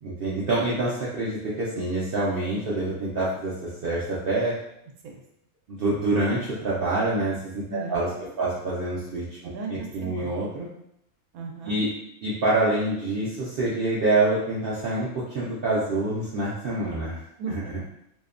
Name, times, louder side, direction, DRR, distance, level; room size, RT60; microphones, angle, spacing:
voice 1, 0.0-4.5 5.7-8.1 8.4-9.3 9.7-10.7 11.6-11.9 12.2-15.1 15.3-17.2 17.5-17.8, right 2 dB, 65° right, -7 dB, 0.5 m, -26 dB
voice 2, 7.6-8.6 9.4-10.5 11.3-11.8 17.4-17.8, right 3 dB, 90° right, 1 dB, 1.1 m, -37 dB
2.7 x 2.1 x 2.4 m, 0.76 s
omnidirectional pair, 1.5 m